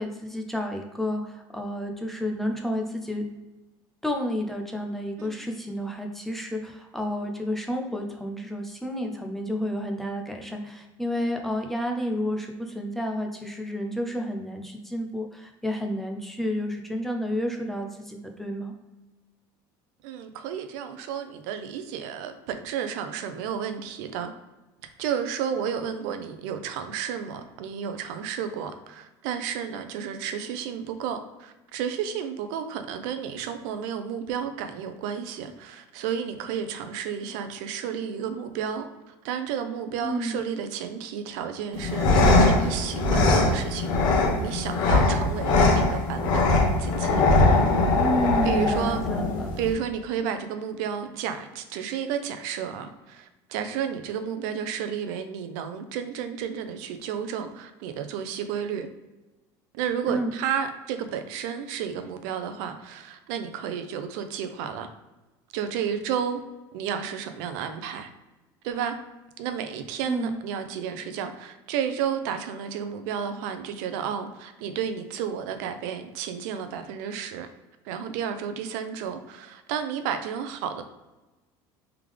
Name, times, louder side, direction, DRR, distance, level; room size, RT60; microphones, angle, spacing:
voice 1, 0.0-3.3 4.0-18.7 40.0-40.4 48.0-49.5 60.1-60.3 70.1-70.4, equal, 5° left, 2 dB, 0.4 m, -30 dB
voice 2, 20.0-24.3 24.8-47.2 48.4-49.0 49.6-58.9 59.7-64.9 65.5-66.4 66.7-68.1 68.6-68.9 69.4-77.5 77.8-80.8, right 8 dB, 75° right, 8 dB, 0.5 m, -32 dB
sound 1, 41.7-49.7, left 2 dB, 50° left, 0.9 m, -21 dB
3.5 x 3.4 x 3.3 m, 1.1 s
cardioid pair, 175°, 10 cm